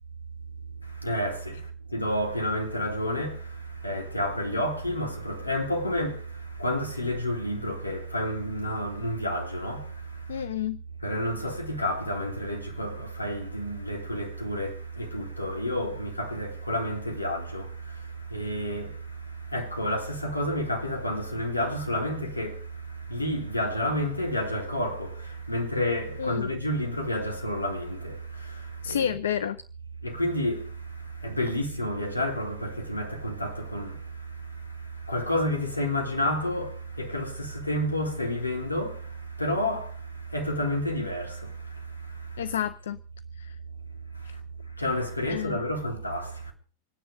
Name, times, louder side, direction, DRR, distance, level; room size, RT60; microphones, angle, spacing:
voice 1, 0.8-10.5 11.0-29.1 30.0-42.5 44.1-44.4 44.8-46.5, equal, 80° left, 3.8 m, -30 dB
voice 2, 10.3-10.8 26.2-26.5 28.8-29.6 42.4-43.0 43.4-43.6 44.2-44.3 45.3-45.6, left 9 dB, 65° left, 0.7 m, -30 dB
25.5 x 10.0 x 5.3 m
figure-of-eight pair, 90°, 0 cm